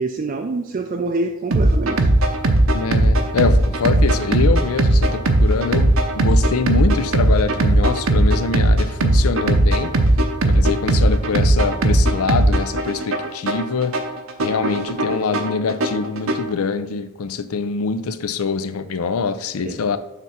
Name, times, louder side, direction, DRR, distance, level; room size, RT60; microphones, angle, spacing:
voice 1, 0.0-2.1 19.6-19.8, right 3 dB, 40° right, 0.4 m, -25 dB
sound 1, 1.5-16.5, right 1 dB, 65° right, 0.7 m, -18 dB
voice 2, 2.7-9.9 10.5-14.0 14.4-20.0, left 5 dB, 80° left, 0.5 m, -24 dB
6.7 x 3.6 x 5.8 m
head